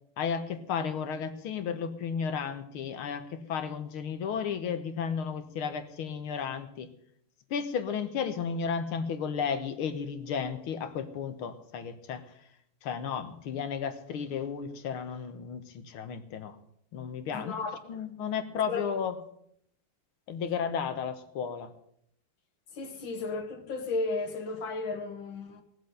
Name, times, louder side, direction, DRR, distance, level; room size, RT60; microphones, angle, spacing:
voice 1, 0.2-6.9 7.5-12.2 12.8-16.6 16.9-17.5 17.9-19.2 20.3-21.7, left 6 dB, 85° left, 2.1 m, -33 dB
voice 2, 17.3-18.0 18.7-18.9 22.7-25.6, left 3 dB, 70° left, 2.4 m, -34 dB
18.5 x 7.3 x 7.9 m
omnidirectional pair, 2.3 m